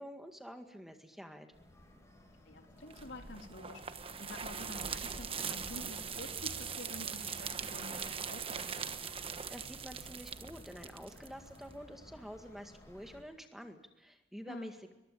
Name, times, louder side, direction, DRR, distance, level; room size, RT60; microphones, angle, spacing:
voice 1, 0.0-1.5 9.5-14.9, equal, ahead, 5 dB, 2.0 m, -48 dB
sound 1, 1.5-13.2, equal, 15° left, 8.0 m, -56 dB
voice 2, 2.5-9.1 14.5-14.7, left 2 dB, 80° left, 4 dB, 3.5 m, -49 dB
sound 2, 2.9-11.7, right 6 dB, 30° right, 1.2 m, -41 dB
22.5 x 22.0 x 8.7 m, 0.97 s
head